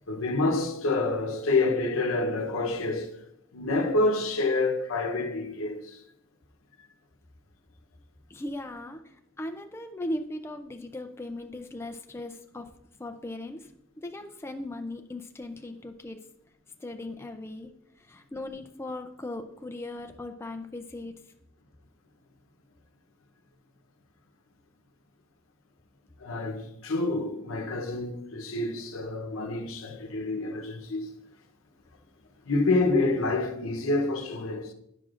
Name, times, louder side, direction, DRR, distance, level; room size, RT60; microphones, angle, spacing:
voice 1, 0.1-3.2 3.5-6.0 26.2-31.1 32.4-34.7, left 2 dB, 80° left, 0.8 m, -28 dB
voice 2, 8.3-12.7 13.0-13.7 14.0-16.2 16.8-17.7 18.0-21.2, left 1 dB, 10° left, 0.3 m, -38 dB
9.5 x 6.3 x 2.4 m
head